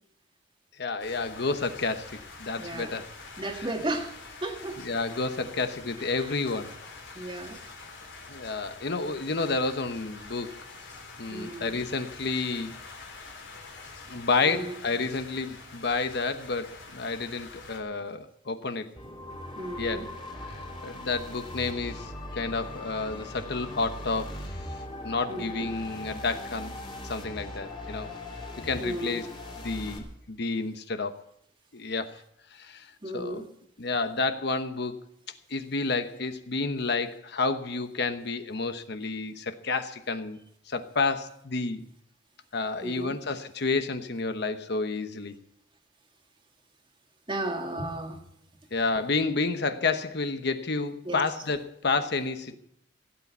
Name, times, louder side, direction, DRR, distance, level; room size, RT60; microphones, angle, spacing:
voice 1, 0.8-3.1 3.5-3.7 4.8-6.7 7.1-7.3 8.3-10.6 11.2-12.8 14.1-18.9 19.8-20.1 20.5-24.8 25.0-26.7 27.0-28.1 28.6-29.3 29.6-31.2 31.7-32.2 32.5-32.9 33.1-33.5 33.8-35.0 35.5-40.4 40.7-41.8 42.5-45.4 48.7-52.5, left 3 dB, 60° left, 1.0 m, -30 dB
sound 1, 1.0-17.8, left 3 dB, 90° left, 3.8 m, -46 dB
voice 2, 2.6-2.9 3.4-4.1 4.4-4.8 6.2-6.3 7.1-7.6 11.3-11.7 14.4-14.7 19.6-20.1 25.3-25.7 28.8-29.2 33.0-33.5 42.8-43.2 47.3-48.2 51.1-51.2, right 1 dB, 25° right, 1.9 m, -34 dB
sound 2, 19.0-30.0, left 1 dB, 30° left, 3.0 m, -40 dB
16.5 x 8.6 x 8.0 m
head